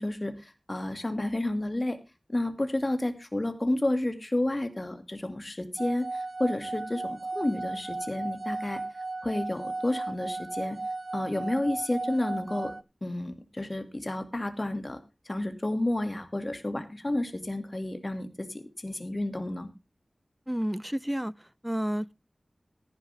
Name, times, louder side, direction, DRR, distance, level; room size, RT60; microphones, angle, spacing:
voice 1, 0.0-2.0 2.3-8.8 9.2-10.8 11.1-12.7 13.0-15.0 15.3-19.7, left 1 dB, 35° left, 2.2 m, -31 dB
sound 1, 5.8-12.8, right 3 dB, 65° right, 0.5 m, -35 dB
voice 2, 20.5-22.1, equal, 10° right, 0.5 m, -31 dB
15.0 x 10.5 x 3.4 m
wide cardioid pair, 50°, 0 cm